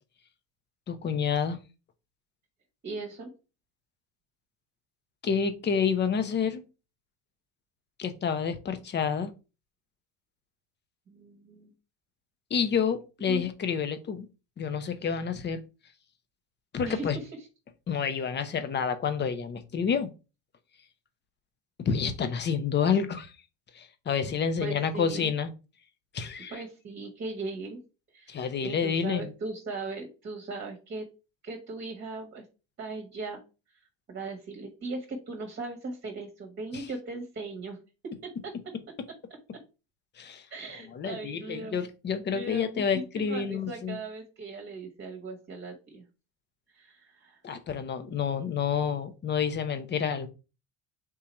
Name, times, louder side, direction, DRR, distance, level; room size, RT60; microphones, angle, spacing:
voice 1, 0.9-1.6 5.2-6.6 8.0-9.3 12.5-14.3 14.6-15.6 16.7-17.2 17.9-20.1 21.8-23.3 23.7-25.5 26.1-26.6 28.3-29.3 36.7-36.8 40.2-40.4 40.9-44.0 47.4-50.3, left 6 dB, 30° left, 10 dB, 0.8 m, -29 dB
voice 2, 2.8-3.3 11.1-11.7 13.3-13.5 16.8-17.3 24.6-25.3 26.5-27.8 28.1-31.1 31.4-32.4 32.8-33.4 34.1-37.8 38.0-38.1 38.4-38.5 40.5-41.8 42.3-46.0 46.7-47.4, right 3 dB, 30° right, 3 dB, 1.2 m, -38 dB
3.8 x 2.8 x 4.3 m, 0.31 s
supercardioid pair, 85°, 35 cm